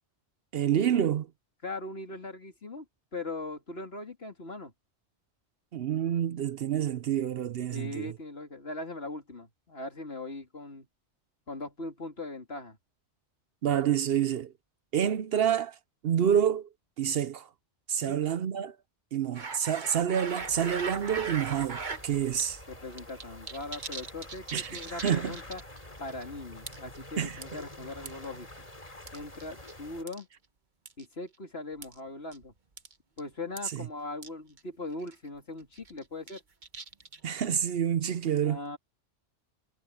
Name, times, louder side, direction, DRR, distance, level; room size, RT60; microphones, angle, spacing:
voice 1, 0.5-1.3 5.7-8.1 13.6-14.5 14.9-15.8 16.0-16.7 17.0-17.5 17.9-18.7 19.1-22.6 24.5-25.4 27.2-27.4 33.7-33.9 37.2-38.6, right 9 dB, 65° right, 0.8 m, -28 dB
voice 2, 1.6-2.8 3.1-4.7 7.7-10.9 11.5-12.8 18.0-18.2 22.7-25.6 26.0-28.6 29.1-30.3 31.0-32.5 33.2-36.4 38.4-38.8, left 2 dB, 60° left, 3.3 m, -40 dB
sound 1, 19.3-22.0 22.4-22.5 22.8-25.8 26.1-26.2 26.7-27.0 27.4-28.3 29.1-29.7 30.1-30.2 30.9-31.0 31.8-32.0 32.3-32.4 32.8-32.9 33.2-33.3 33.6-33.7 34.2-34.3 34.6-34.7 35.0-35.3 35.7-37.3, right 4 dB, 45° right, 1.4 m, -39 dB
sound 2, 20.4-30.0, left 1 dB, 30° left, 3.3 m, -47 dB
omnidirectional pair, 1.2 m